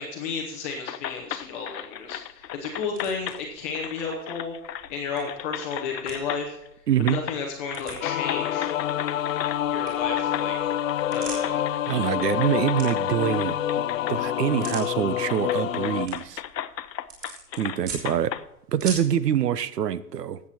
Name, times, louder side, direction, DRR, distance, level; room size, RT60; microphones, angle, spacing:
voice 1, 0.0-4.5 4.9-6.6 7.0-8.7 9.7-10.7 11.1-11.6, left 5 dB, 10° left, -1 dB, 0.7 m, -32 dB
keyboard sound, 0.9-3.4 3.7-5.0 5.3-6.7 7.0-7.4 7.7-9.6 10.2-14.2 14.6-14.7 15.3-18.4, left 10 dB, 90° left, 0.9 m, -36 dB
sound 1, 1.0-19.2, right 4 dB, 20° right, 3.5 m, -45 dB
voice 2, 6.9-7.2 11.9-13.6 14.1-16.4 17.6-18.3 18.7-20.4, right 10 dB, 75° right, 16 dB, 1.0 m, -25 dB
sound 2, 8.0-16.1, left 11 dB, 55° left, 0.5 m, -27 dB
13.5 x 8.6 x 4.3 m, 0.84 s
hypercardioid pair, 170°, 48 cm